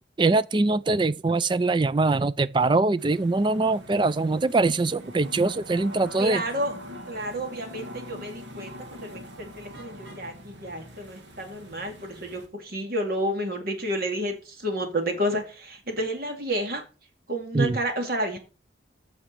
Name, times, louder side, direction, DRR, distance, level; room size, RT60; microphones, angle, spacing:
voice 1, 0.2-6.4 17.5-17.8, right 3 dB, 25° right, 0.4 m, -23 dB
sound 1, 3.0-12.5, left 1 dB, 70° right, 1.9 m, -43 dB
voice 2, 6.2-6.7 7.1-16.8 17.3-18.4, right 1 dB, 50° right, 2.4 m, -30 dB
7.3 x 5.9 x 6.6 m
head